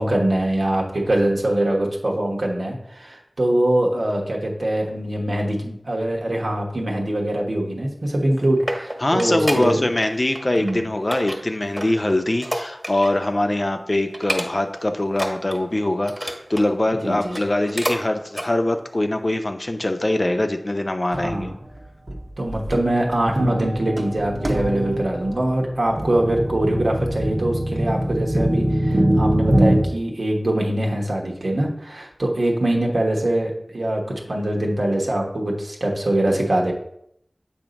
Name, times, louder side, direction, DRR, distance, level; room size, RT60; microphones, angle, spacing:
voice 1, 0.0-9.8 10.6-10.9 17.0-17.4 21.1-21.5 22.4-34.0 34.3-36.7, right 1 dB, 85° right, -1 dB, 1.1 m, -23 dB
sound 1, 8.1-10.1 10.3-10.7 11.1-13.3 13.6-13.7 14.1-14.8 15.1-16.7 17.2-18.0 18.3-18.5 19.0-19.1, equal, 10° right, 1.2 m, -30 dB
voice 2, 9.0-21.5, left 1 dB, 45° left, 6 dB, 0.6 m, -23 dB
sound 2, 21.1-21.5 22.1-22.2 22.5-29.8, right 1 dB, 60° right, 0.8 m, -23 dB
7.1 x 2.7 x 5.1 m, 0.73 s
wide cardioid pair, 50°, 0 cm